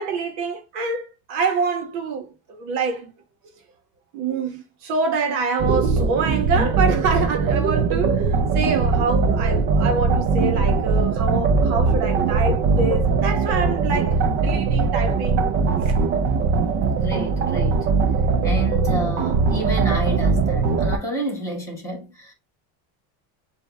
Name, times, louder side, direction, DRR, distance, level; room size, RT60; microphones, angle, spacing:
voice 1, 0.0-3.1 4.1-15.4 15.8-16.0, right 4 dB, 75° right, 1.3 m, -26 dB
sound 1, 5.6-21.0, right 4 dB, 30° right, 0.4 m, -20 dB
voice 2, 16.9-17.9 18.4-22.3, equal, 5° left, 2.2 m, -30 dB
7.7 x 2.8 x 2.2 m
cardioid pair, 170°, 41 cm